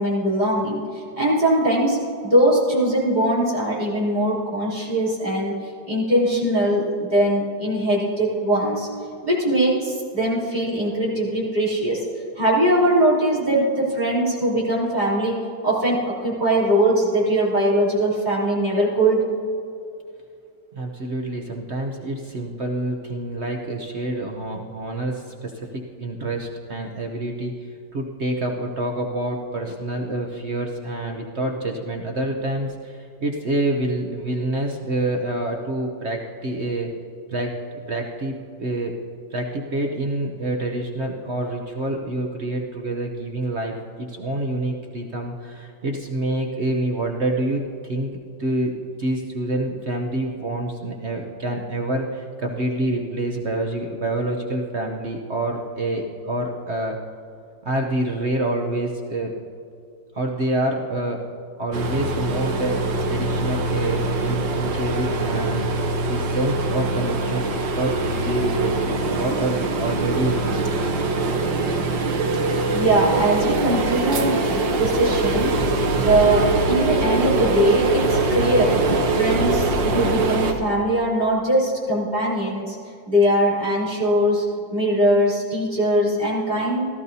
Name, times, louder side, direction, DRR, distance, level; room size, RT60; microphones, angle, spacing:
voice 1, 0.0-5.6 5.9-8.9 9.2-12.0 12.3-15.4 15.6-19.3 72.7-75.6 75.9-78.7 79.1-82.8 83.1-84.4 84.7-86.9, right 1 dB, 25° right, -8 dB, 3.4 m, -21 dB
voice 2, 20.7-36.9 37.3-37.6 37.9-38.9 39.3-56.9 57.6-59.3 60.1-61.2 61.6-65.7 66.1-67.5 67.7-70.6, right 1 dB, 50° right, 1 dB, 0.8 m, -27 dB
sound 1, 61.7-80.5, right 3 dB, 85° right, 1.7 m, -23 dB
17.5 x 13.0 x 2.7 m, 2.4 s
omnidirectional pair, 2.0 m